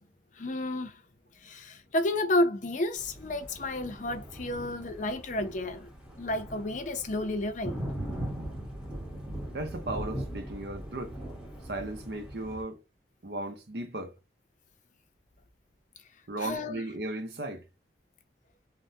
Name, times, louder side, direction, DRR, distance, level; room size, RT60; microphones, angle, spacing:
voice 1, 0.3-1.0 1.4-5.9 6.2-7.9 16.4-16.8, left 1 dB, 45° left, 0.5 m, -31 dB
Thunder, 3.0-12.6, right 1 dB, 5° right, 1.0 m, -40 dB
voice 2, 9.5-11.2 11.6-12.8 13.2-14.1 16.3-17.6, right 2 dB, 65° right, 0.7 m, -36 dB
3.4 x 2.1 x 2.6 m
head